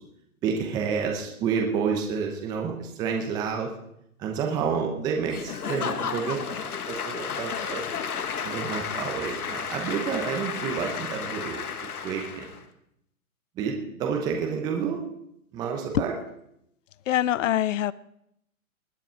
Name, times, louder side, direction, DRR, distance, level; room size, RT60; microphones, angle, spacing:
voice 1, 0.4-3.7 4.2-6.4 6.7-7.8 8.4-11.7 12.0-12.5 13.6-15.1 15.5-16.1, right 6 dB, 10° right, 2 dB, 0.7 m, -29 dB
Applause / Crowd, 5.3-12.6, left 6 dB, 85° left, 1.4 m, -33 dB
voice 2, 17.1-17.9, left 12 dB, 60° left, 20 dB, 0.6 m, -24 dB
20.0 x 8.9 x 4.5 m, 0.78 s
hypercardioid pair, 155°, 43 cm